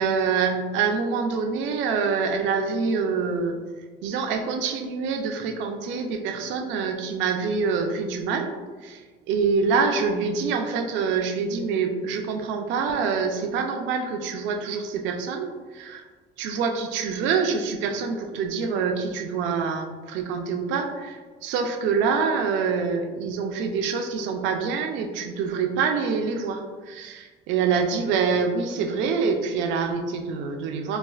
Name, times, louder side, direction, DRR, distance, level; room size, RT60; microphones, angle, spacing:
voice 1, 0.0-3.6 4.0-8.5 8.8-15.5 15.7-16.0 16.4-31.0, right 5 dB, 70° right, 4 dB, 0.4 m, -26 dB
4.2 x 2.4 x 2.3 m, 1.4 s
cardioid pair, 165°, 20 cm